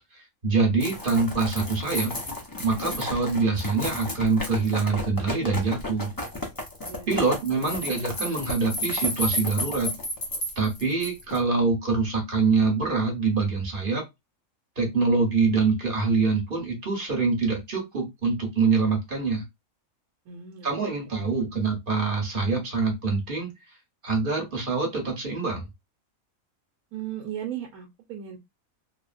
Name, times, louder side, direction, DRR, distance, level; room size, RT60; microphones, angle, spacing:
voice 1, 0.4-2.1 2.6-6.1 7.1-9.9 10.6-14.1 14.8-19.4 20.6-23.5 24.0-25.7, right 4 dB, 40° right, 1 dB, 1.1 m, -25 dB
sound 1, 0.8-11.4, left 1 dB, 30° left, 0.4 m, -32 dB
voice 2, 20.3-20.9 26.9-28.4, right 10 dB, 85° right, 1 dB, 1.1 m, -36 dB
3.6 x 2.1 x 2.4 m, 0.19 s
omnidirectional pair, 1.5 m